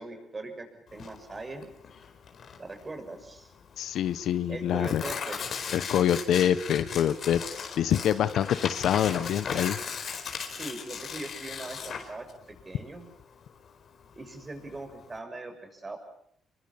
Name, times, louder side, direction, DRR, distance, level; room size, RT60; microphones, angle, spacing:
voice 1, 0.0-1.6 2.6-3.5 4.5-5.4 10.5-12.3 12.6-13.1 14.1-16.0, right 2 dB, 25° right, 5 dB, 6.9 m, -40 dB
Tearing, 0.9-15.2, left 6 dB, 55° left, 4.5 m, -38 dB
voice 2, 3.8-5.0 5.7-7.4 7.8-9.8, left 10 dB, 75° left, 14 dB, 1.2 m, -25 dB
28.5 x 23.0 x 7.2 m, 0.69 s
cardioid pair, 90°, 0 cm